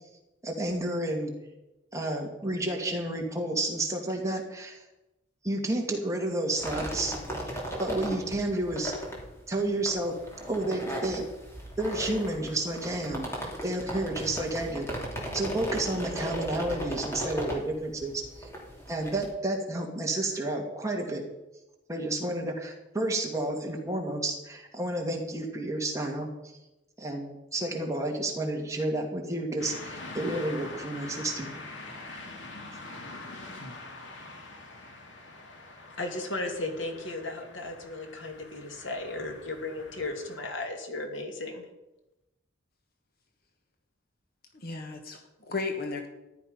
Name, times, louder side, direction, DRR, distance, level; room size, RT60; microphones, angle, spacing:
voice 1, 0.4-1.3 1.9-4.8 5.4-7.2 7.5-8.9 9.5-10.1 10.5-11.2 11.8-13.3 13.6-14.9 15.3-18.5 18.9-21.2 21.9-26.3 27.0-31.5, right 1 dB, 15° right, 0 dB, 2.3 m, -31 dB
sound 1, 6.6-19.3, equal, 15° left, 3.0 m, -37 dB
sound 2, 29.6-40.6, left 2 dB, 70° left, 2.3 m, -44 dB
voice 2, 36.0-41.7, left 2 dB, 85° left, 3 dB, 2.5 m, -35 dB
voice 3, 44.5-46.1, left 3 dB, 50° left, 5 dB, 1.4 m, -35 dB
14.0 x 11.0 x 5.5 m, 0.98 s
head